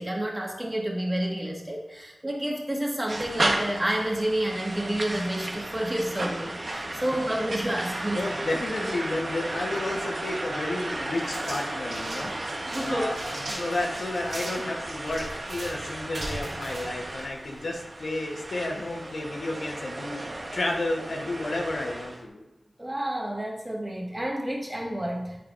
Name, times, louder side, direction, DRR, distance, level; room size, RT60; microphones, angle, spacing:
voice 1, 0.0-8.3 12.7-13.2 22.8-25.4, right 1 dB, 20° right, -1 dB, 1.7 m, -29 dB
sound 1, 3.1-22.2, right 1 dB, 55° right, 1.3 m, -34 dB
voice 2, 8.1-20.3 20.5-22.4, left 2 dB, 85° left, 0 dB, 1.3 m, -32 dB
sound 2, 11.2-17.8, right 1 dB, 80° right, 2.8 m, -40 dB
12.0 x 4.7 x 2.6 m, 0.99 s
wide cardioid pair, 60°, 0 cm